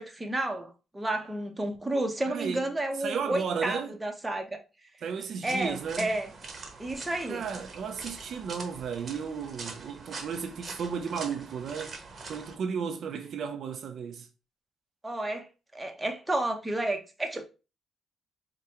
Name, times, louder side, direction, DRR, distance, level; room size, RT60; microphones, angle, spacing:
voice 1, 0.0-4.6 5.4-6.3 6.8-7.5 15.0-15.5 15.7-17.4, right 1 dB, 15° right, 0.8 m, -31 dB
voice 2, 2.3-2.6 3.0-4.0 5.0-6.1 7.3-12.0 12.3-14.3, right 6 dB, 65° right, 0.5 m, -34 dB
sound 1, 5.5-12.6, right 4 dB, 45° right, 0.9 m, -44 dB
4.8 x 2.2 x 2.8 m
cardioid pair, 90°, 0 cm